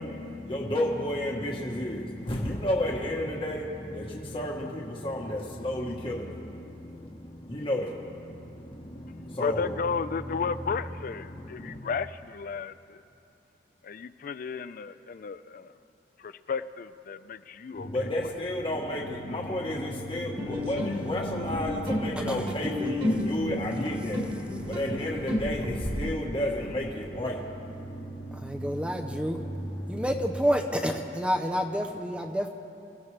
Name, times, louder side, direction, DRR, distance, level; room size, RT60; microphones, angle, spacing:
voice 1, 0.0-10.6 11.1-11.8 17.7-30.1, left 1 dB, 30° left, -2 dB, 1.2 m, -32 dB
voice 2, 9.4-13.0 13.8-15.7 16.2-17.9, left 5 dB, 50° left, 13 dB, 0.4 m, -33 dB
sound 1, 20.4-26.1, left 1 dB, 30° right, 1.8 m, -32 dB
voice 3, 28.3-29.4 29.9-32.5, equal, 5° right, 3 dB, 0.6 m, -29 dB
26.0 x 15.0 x 3.3 m, 2.6 s
head